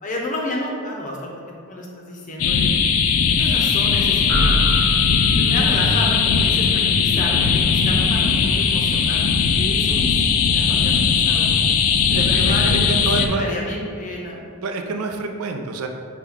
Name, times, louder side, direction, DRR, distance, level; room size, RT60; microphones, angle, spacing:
voice 1, 0.0-1.3 1.6-2.7 3.3-4.6 5.2-11.5 12.1-12.8 13.1-14.4, left 1 dB, 35° left, -1 dB, 0.6 m, -31 dB
sound 1, 2.4-13.3, left 6 dB, 70° left, 0.3 m, -18 dB
sound 2, 4.3-5.9, equal, ahead, 1.0 m, -25 dB
voice 2, 12.1-13.4 14.6-15.9, right 3 dB, 75° right, 5 dB, 0.4 m, -27 dB
6.2 x 2.2 x 3.5 m, 2.3 s
head